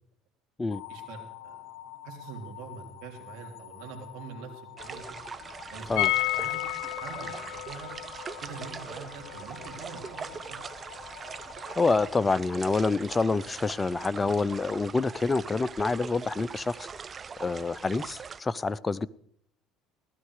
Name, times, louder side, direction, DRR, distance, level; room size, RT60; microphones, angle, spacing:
sound 1, 0.7-12.9, left 12 dB, 55° left, 1.3 m, -48 dB
voice 1, 0.9-1.7 2.0-5.2 5.7-6.0 6.3-6.6 7.0-7.9 8.4-10.6, right 6 dB, 70° right, 1 dB, 3.5 m, -44 dB
sound 2, 4.8-18.4, right 5 dB, 30° right, 0.5 m, -42 dB
sound 3, 6.0-11.7 12.0-12.1 12.3-12.4, left 19 dB, 70° left, 0.8 m, -33 dB
voice 2, 11.8-16.9 17.4-19.1, left 3 dB, 20° left, 17 dB, 0.6 m, -27 dB
18.0 x 12.5 x 4.9 m, 0.67 s
supercardioid pair, 85°, 0 cm